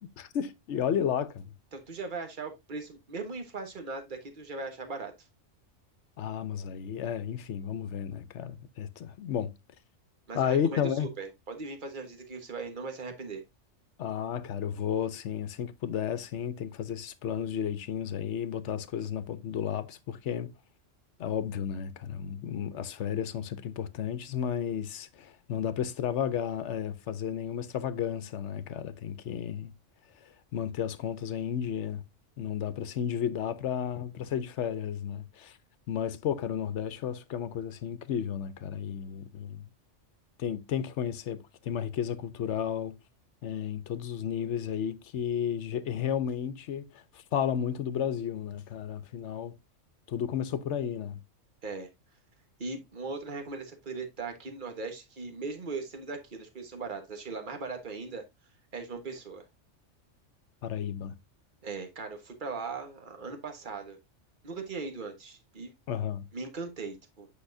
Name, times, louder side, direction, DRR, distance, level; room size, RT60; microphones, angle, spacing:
voice 1, 0.2-1.5 6.2-9.5 10.3-11.1 14.0-20.5 21.2-29.7 30.5-32.0 32.4-35.5 35.9-39.7 40.4-42.9 43.4-46.9 47.3-49.5 50.1-51.2 60.6-61.1 65.9-66.3, left 9 dB, 70° left, 1.0 m, -32 dB
voice 2, 1.7-5.1 10.3-13.4 51.6-51.9 52.6-58.2 58.7-59.4 61.6-64.0 64.4-65.7 66.3-67.3, right 4 dB, 40° right, 1.5 m, -39 dB
8.5 x 5.5 x 2.6 m
omnidirectional pair, 1.3 m